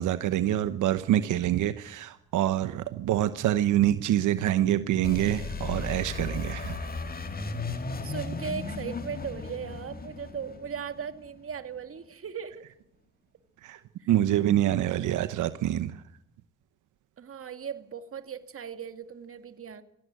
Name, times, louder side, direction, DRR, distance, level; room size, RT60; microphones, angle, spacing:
voice 1, 0.0-6.9 13.6-13.8 14.1-16.0, right 12 dB, 80° right, 12 dB, 1.0 m, -26 dB
sound 1, 5.0-11.6, left 3 dB, 30° left, 2.3 m, -36 dB
voice 2, 8.0-12.6 14.0-14.1 17.2-19.8, right 7 dB, 45° right, 9 dB, 2.1 m, -38 dB
18.0 x 15.5 x 9.4 m, 0.79 s
cardioid pair, 90°, 30 cm